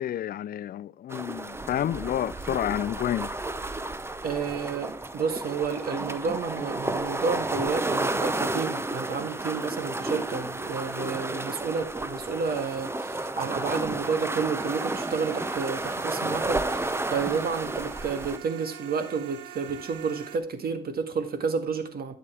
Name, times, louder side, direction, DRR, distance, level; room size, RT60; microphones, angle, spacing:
voice 1, 0.0-3.3, left 11 dB, 50° left, 0.4 m, -30 dB
sound 1, 1.1-18.4, right 2 dB, 10° right, 0.7 m, -32 dB
voice 2, 4.2-22.2, right 5 dB, 50° right, 1.8 m, -30 dB
sound 2, 14.6-20.4, right 10 dB, 85° right, 1.3 m, -44 dB
11.0 x 8.7 x 3.4 m
cardioid pair, 90°, 20 cm